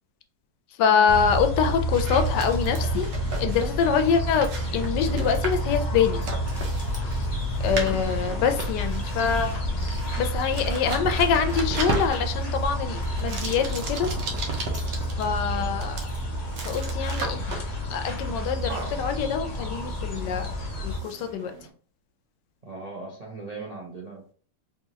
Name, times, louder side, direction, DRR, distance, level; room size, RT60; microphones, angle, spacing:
voice 1, 0.8-3.1 3.4-6.2 7.6-9.6 10.2-14.1 15.1-16.0 16.6-17.5 17.9-20.5 20.8-21.5, left 6 dB, 80° left, 7 dB, 1.2 m, -25 dB
sound 1, 1.1-21.0, equal, 50° left, 0.4 m, -29 dB
sound 2, 1.9-21.7, right 3 dB, 80° right, 1.6 m, -37 dB
sound 3, 4.4-4.5 5.3-5.4 5.8-6.6 6.9-7.5 7.9-8.0 8.6-8.7 9.1-11.4 11.7-11.9 12.3-15.4 16.0-17.5 17.9-18.3 18.6-19.0, left 1 dB, 10° left, 1.1 m, -51 dB
voice 2, 22.6-24.3, right 3 dB, 40° right, -3 dB, 0.6 m, -38 dB
3.6 x 3.5 x 2.8 m, 0.43 s
omnidirectional pair, 1.9 m